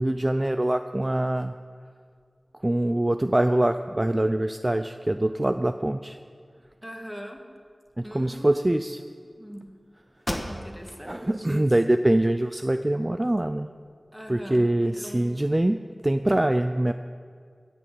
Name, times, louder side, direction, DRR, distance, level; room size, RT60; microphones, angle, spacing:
voice 1, 0.0-1.5 2.6-6.2 8.0-9.0 11.1-13.7 14.3-15.8 16.0-16.9, right 1 dB, 30° right, 8 dB, 0.4 m, -24 dB
voice 2, 6.8-7.4 8.0-9.7 10.5-11.7 14.1-15.4, equal, 5° right, 1 dB, 1.9 m, -41 dB
sound 1, 9.7-9.8 10.2-11.0 11.5-11.6 12.1-13.0, left 1 dB, 20° left, 1.7 m, -35 dB
17.5 x 6.2 x 7.7 m, 2.1 s
wide cardioid pair, 45°, 0 cm